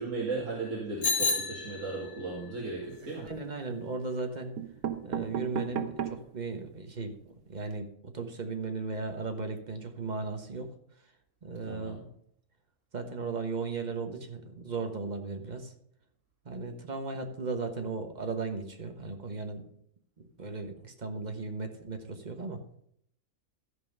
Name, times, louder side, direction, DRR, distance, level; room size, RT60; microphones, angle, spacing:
voice 1, 0.0-3.3 11.6-12.0, right 3 dB, 60° right, -3 dB, 2.2 m, -36 dB
Bicycle bell, 1.0-2.3, left 4 dB, 65° left, 2.6 m, -30 dB
sound 1, 2.8-3.4 4.2-4.3 4.6-6.4 6.9-7.0 7.1-7.2 7.5-7.7, right 9 dB, 85° right, 1.3 m, -35 dB
voice 2, 3.2-4.5 5.0-7.2 7.5-10.7 11.4-12.1 12.9-15.7 16.4-19.6 20.2-22.6, right 4 dB, 35° right, 6 dB, 1.2 m, -36 dB
13.5 x 5.5 x 5.4 m, 0.69 s
omnidirectional pair, 1.5 m